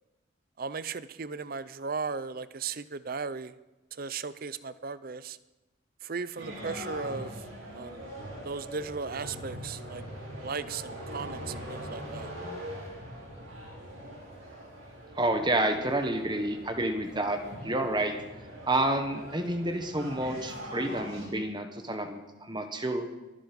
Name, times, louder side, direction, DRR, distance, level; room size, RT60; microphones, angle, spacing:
voice 1, 0.6-3.5 3.9-5.4 6.0-7.4 7.7-8.1 8.4-10.0 10.4-12.3, right 5 dB, 45° right, 16 dB, 0.6 m, -36 dB
sound 1, 6.4-21.3, equal, 75° right, 6.2 m, -42 dB
voice 2, 15.1-18.2 18.7-23.0, right 1 dB, 20° right, 6 dB, 1.3 m, -29 dB
23.0 x 10.5 x 5.3 m, 1.1 s
head